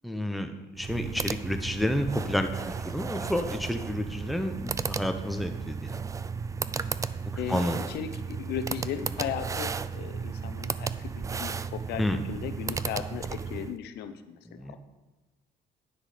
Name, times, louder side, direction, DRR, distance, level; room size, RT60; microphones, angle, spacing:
voice 1, 0.0-0.5 0.8-6.0 7.5-7.8 12.0-12.2 14.6-14.8, left 1 dB, ahead, 6 dB, 0.7 m, -30 dB
sound 1, 0.7-13.8, right 5 dB, 20° right, 0.3 m, -34 dB
voice 2, 7.4-14.8, left 9 dB, 80° left, 10 dB, 0.7 m, -37 dB
10.0 x 6.2 x 5.0 m, 1.2 s
cardioid pair, 110°, 17 cm